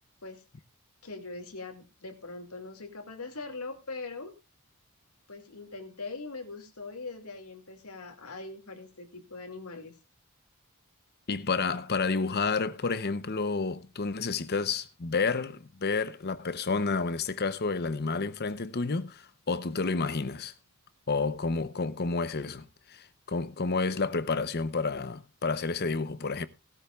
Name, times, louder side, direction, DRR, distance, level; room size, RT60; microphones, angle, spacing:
voice 1, 1.0-4.3 5.3-9.9, left 3 dB, 80° left, 2.4 m, -41 dB
voice 2, 11.3-20.5 21.1-26.5, left 4 dB, 45° left, 0.8 m, -30 dB
17.0 x 12.5 x 2.4 m
head